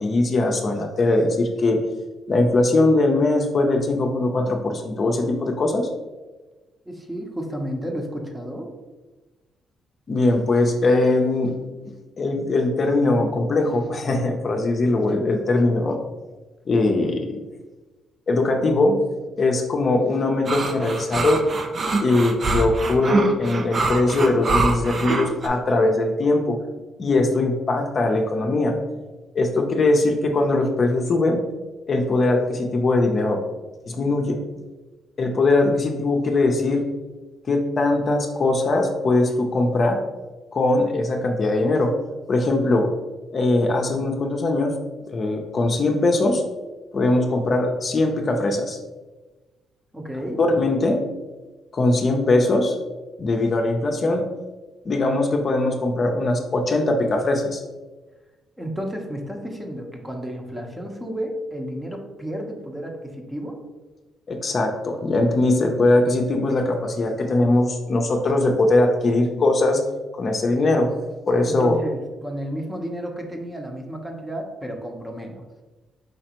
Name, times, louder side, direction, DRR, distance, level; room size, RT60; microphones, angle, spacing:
voice 1, 0.0-1.8 2.3-5.9 10.1-11.6 12.2-16.0 16.7-17.3 18.3-18.9 19.4-21.4 22.0-26.6 27.0-28.8 29.3-31.4 31.9-33.4 33.9-34.4 35.2-36.8 37.5-40.0 40.5-41.9 42.3-42.9 43.3-44.7 45.1-46.4 46.9-48.8 50.4-51.0 51.7-52.8 53.2-54.2 54.8-57.6 64.3-69.8 70.1-70.9 71.3-71.8, left 2 dB, 45° left, 2 dB, 0.6 m, -21 dB
voice 2, 6.9-8.7 49.9-50.4 58.6-63.6 71.4-75.4, equal, 10° right, 2 dB, 0.8 m, -32 dB
sound 1, 20.5-25.5, right 3 dB, 45° right, 0.5 m, -24 dB
5.0 x 3.2 x 2.9 m, 1.2 s
cardioid pair, 90°, 0 cm